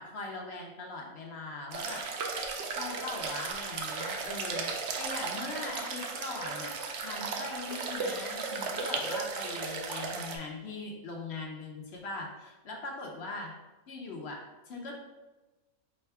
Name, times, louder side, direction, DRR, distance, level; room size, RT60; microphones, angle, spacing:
voice 1, 0.0-2.1 2.7-4.7 5.0-13.5 13.9-14.9, left 3 dB, 60° left, 0 dB, 0.7 m, -40 dB
sound 1, 1.7-10.4, right 4 dB, 65° right, 0.8 m, -35 dB
4.2 x 2.2 x 4.5 m, 1.2 s
omnidirectional pair, 1.5 m